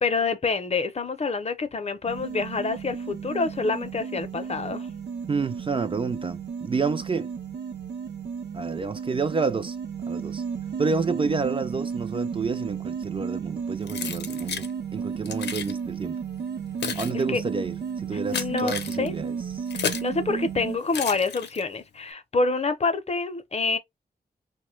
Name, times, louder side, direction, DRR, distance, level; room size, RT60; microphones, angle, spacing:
voice 1, 0.0-4.9 16.9-17.4 18.3-19.1 19.7-23.8, left 3 dB, 40° left, 0.6 m, -27 dB
sound 1, 2.1-20.8, right 6 dB, 80° right, 0.7 m, -33 dB
voice 2, 5.3-7.3 8.5-9.8 10.1-10.4 10.8-16.2 16.9-19.7, right 4 dB, 30° right, 0.3 m, -29 dB
Keys jangling, 13.9-14.7 15.3-15.7 16.5-20.2 20.9-21.8, left 7 dB, 85° left, 0.6 m, -33 dB
3.0 x 2.1 x 3.0 m
wide cardioid pair, 95°, 17 cm